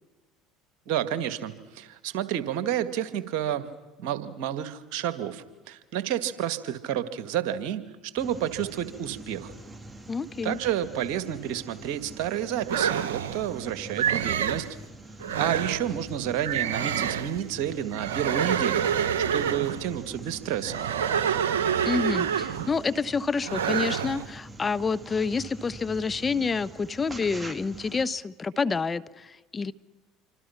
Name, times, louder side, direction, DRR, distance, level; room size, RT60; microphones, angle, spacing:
voice 1, 0.9-3.7 4.0-7.8 8.1-9.5 10.4-14.7 15.4-18.9 19.3-20.8, right 10 dB, 65° right, 1.9 m, -30 dB
sound 1, 8.2-28.0, right 2 dB, 15° right, 2.0 m, -45 dB
voice 2, 10.1-10.6 21.8-29.7, left 4 dB, 25° left, 0.9 m, -28 dB
sound 2, 12.7-13.5 14.0-14.7 15.2-15.9 16.4-17.4 17.9-19.9 20.6-22.8 23.4-24.2, right 8 dB, 80° right, 0.9 m, -27 dB
27.5 x 25.0 x 5.9 m
hypercardioid pair, 70°, 0 cm